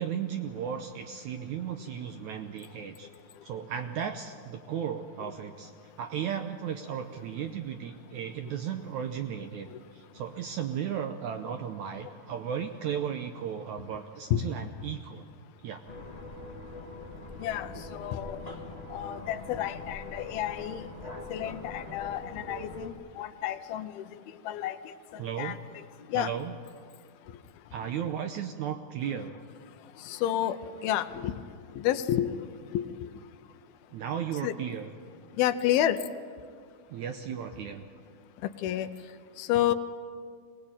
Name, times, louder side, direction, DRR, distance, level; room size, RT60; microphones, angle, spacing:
voice 1, 0.0-3.1 3.4-5.7 6.0-15.3 15.6-15.8 25.2-25.6 26.1-26.5 27.7-29.4 33.9-34.9 36.9-37.9, right 8 dB, 80° right, 6 dB, 1.8 m, -35 dB
sound 1, 15.9-22.9, left 2 dB, 35° left, 0.6 m, -42 dB
voice 2, 17.4-18.5 18.9-20.9 21.3-26.3 27.3-27.4 29.8-33.2 34.4-34.6 35.4-36.0 38.4-38.9 39.4-39.7, left 11 dB, 85° left, 10 dB, 2.6 m, -31 dB
22.5 x 19.0 x 8.8 m, 2.1 s
omnidirectional pair, 4.3 m